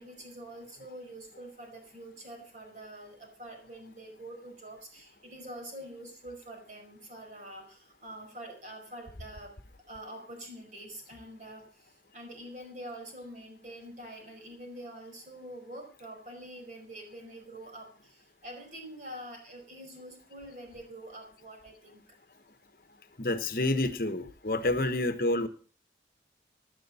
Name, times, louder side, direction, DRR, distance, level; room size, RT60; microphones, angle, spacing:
voice 1, 0.0-9.6 9.9-22.2 24.6-24.7, right 1 dB, 45° right, 4 dB, 5.2 m, -46 dB
voice 2, 23.2-25.5, left 2 dB, 55° left, 9 dB, 1.2 m, -28 dB
17.0 x 10.5 x 4.3 m, 0.39 s
head